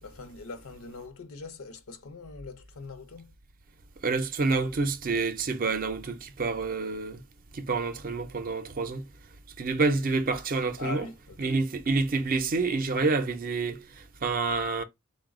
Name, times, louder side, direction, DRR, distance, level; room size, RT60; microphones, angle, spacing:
voice 1, 0.0-3.3 10.8-11.5, left 4 dB, 75° left, 0.7 m, -42 dB
voice 2, 4.0-7.2 7.5-9.1 9.6-11.1 11.4-14.8, right 3 dB, 40° right, 0.5 m, -28 dB
3.9 x 2.2 x 3.5 m
head